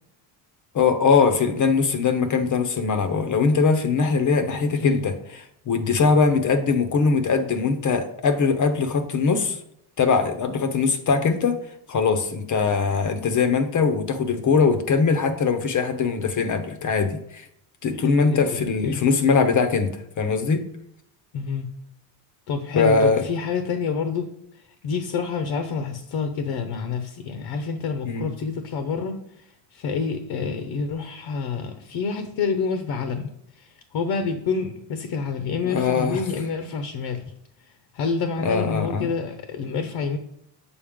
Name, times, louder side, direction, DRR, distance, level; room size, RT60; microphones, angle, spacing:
voice 1, 0.7-5.1 5.7-9.6 10.0-11.6 11.9-17.4 17.8-20.6 22.8-23.2 28.0-28.3 35.6-36.2 38.4-39.1, left 5 dB, 40° left, 8 dB, 0.8 m, -21 dB
voice 2, 4.5-5.0 18.0-19.0 21.3-21.7 22.5-24.3 24.8-33.3 33.6-37.2 37.9-40.2, left 5 dB, 60° left, 7 dB, 0.9 m, -28 dB
7.1 x 4.1 x 3.7 m, 0.75 s
supercardioid pair, 90°, 49 cm